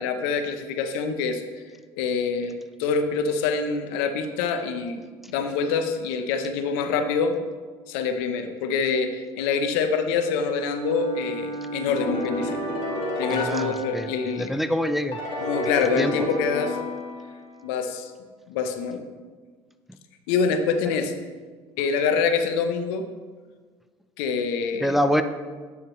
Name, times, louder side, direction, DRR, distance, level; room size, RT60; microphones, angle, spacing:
voice 1, 0.0-1.4 2.0-7.3 7.9-12.6 13.2-14.5 15.4-16.8 17.6-18.1 18.5-19.0 20.3-21.1 21.8-23.0 24.2-25.0, left 5 dB, 80° left, 7 dB, 0.8 m, -25 dB
Bowed string instrument, 10.4-13.5, right 3 dB, 65° right, 2.0 m, -36 dB
sound 1, 11.9-14.5 15.1-17.6, left 2 dB, 45° left, 2.1 m, -31 dB
voice 2, 13.3-14.1 14.4-15.2 16.0-16.1 24.8-25.2, equal, ahead, 9 dB, 0.5 m, -25 dB
9.8 x 6.5 x 3.1 m, 1.5 s
supercardioid pair, 80°, 13 cm